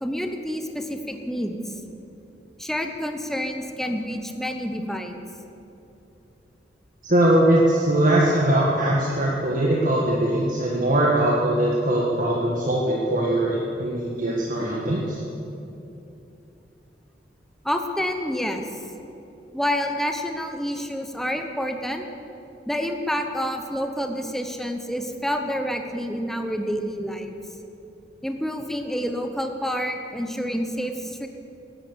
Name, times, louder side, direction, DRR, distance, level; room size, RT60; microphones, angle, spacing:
voice 1, 0.0-1.7 2.6-5.3 17.6-18.7 19.5-22.0 22.7-27.4 28.2-31.3, equal, ahead, 5 dB, 0.9 m, -28 dB
voice 2, 7.0-15.2, right 1 dB, 50° right, -4 dB, 1.7 m, -21 dB
16.5 x 11.0 x 7.0 m, 2.9 s
head